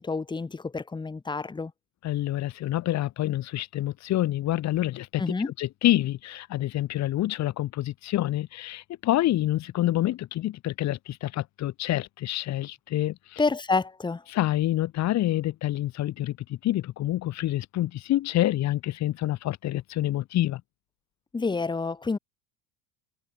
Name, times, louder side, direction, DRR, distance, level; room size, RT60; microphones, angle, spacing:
voice 1, 0.0-1.7 5.2-5.5 13.4-14.2 21.3-22.2, left 4 dB, 10° left, 1.7 m, -28 dB
voice 2, 2.0-13.4 14.3-20.6, left 14 dB, 40° left, 2.1 m, -27 dB
supercardioid pair, 140°, 42 cm